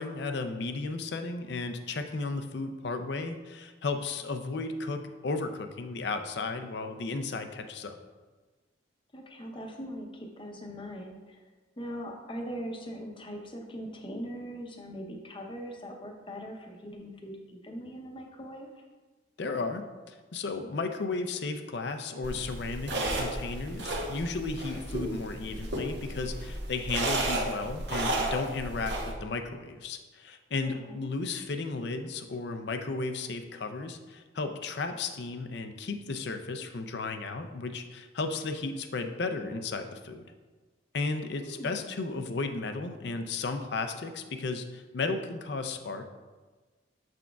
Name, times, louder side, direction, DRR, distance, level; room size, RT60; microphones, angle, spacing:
voice 1, 0.0-8.0 19.4-40.3 40.9-46.1, left 3 dB, 60° left, 7 dB, 0.5 m, -34 dB
voice 2, 9.1-11.4 11.8-18.7 30.6-31.1 41.4-41.8, equal, 25° left, 2 dB, 0.7 m, -41 dB
sound 1, 22.2-29.1, right 1 dB, 65° right, 0.9 m, -33 dB
7.2 x 6.1 x 2.3 m, 1.3 s
head